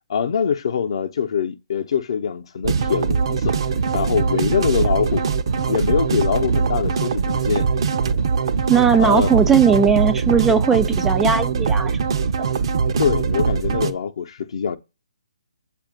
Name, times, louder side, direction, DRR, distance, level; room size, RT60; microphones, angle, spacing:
voice 1, 0.1-3.6 3.9-5.2 5.7-7.7 9.0-9.3 13.0-14.8, left 7 dB, 55° left, 0.7 m, -23 dB
sound 1, 2.6-13.9, right 5 dB, 50° right, 0.6 m, -21 dB
voice 2, 8.7-12.1, right 6 dB, 10° right, 0.3 m, -17 dB
7.2 x 2.5 x 5.1 m
figure-of-eight pair, 140°, 3 cm